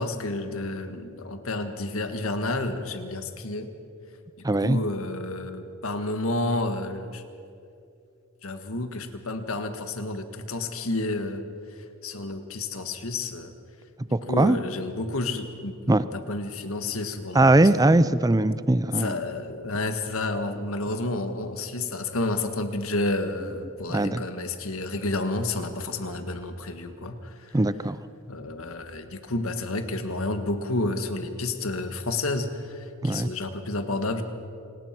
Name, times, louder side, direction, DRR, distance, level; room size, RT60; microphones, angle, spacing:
voice 1, 0.0-3.7 4.6-7.2 8.4-11.4 12.0-13.5 14.3-17.8 19.0-27.6 28.3-34.2, left 2 dB, 70° left, 8 dB, 1.8 m, -30 dB
voice 2, 4.4-4.8 14.1-14.6 15.9-16.0 17.3-19.2 23.9-24.2 27.5-28.0 33.0-33.3, right 2 dB, 15° right, 15 dB, 0.5 m, -20 dB
27.0 x 19.0 x 6.1 m, 2.5 s
head